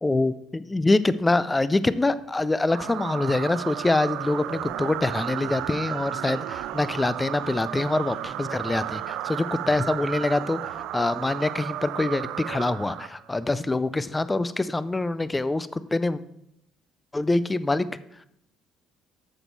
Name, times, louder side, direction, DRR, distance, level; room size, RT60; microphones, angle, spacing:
voice 1, 0.0-16.2 17.1-17.9, left 2 dB, 10° left, 15 dB, 0.3 m, -25 dB
sound 1, 2.7-13.4, right 12 dB, 75° right, 0.4 m, -33 dB
8.1 x 7.1 x 4.5 m, 0.77 s
cardioid pair, 155°, 0 cm